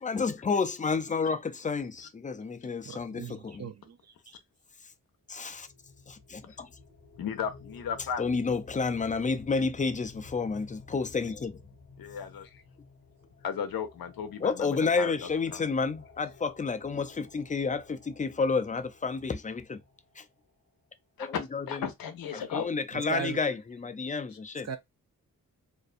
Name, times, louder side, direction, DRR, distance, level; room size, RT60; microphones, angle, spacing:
voice 1, 0.0-3.7 5.3-5.7 6.1-6.7 8.2-11.6 14.4-19.8 20.2-20.3 21.2-21.9 22.3-24.7, left 4 dB, 25° left, 0.4 m, -30 dB
voice 2, 2.8-4.0 4.3-4.4 23.1-23.4 24.7-24.8, right 7 dB, 50° right, 0.6 m, -37 dB
sound 1, 5.5-20.4, left 4 dB, 45° left, 0.9 m, -52 dB
voice 3, 7.2-8.2 12.0-12.6 13.4-15.6 21.2-22.7, left 7 dB, 85° left, 0.6 m, -35 dB
2.6 x 2.2 x 2.4 m
cardioid pair, 70°, 35 cm